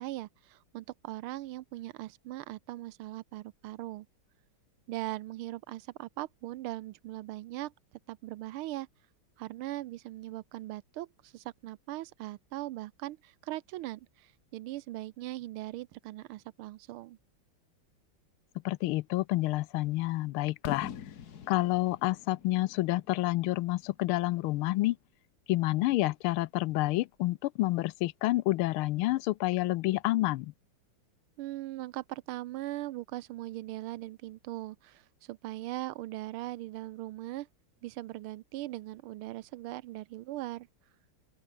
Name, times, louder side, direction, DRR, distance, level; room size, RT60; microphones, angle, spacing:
voice 1, 0.0-4.1 4.9-7.7 8.1-8.9 9.4-17.2 31.4-37.5 37.8-40.7, right 16 dB, 85° right, 1.5 m, -40 dB
voice 2, 18.6-20.9 21.5-25.0 25.5-30.5, left 18 dB, 85° left, 1.5 m, -29 dB
Fireworks, 20.6-24.5, left 8 dB, 50° left, 1.7 m, -44 dB
open air
omnidirectional pair, 2.3 m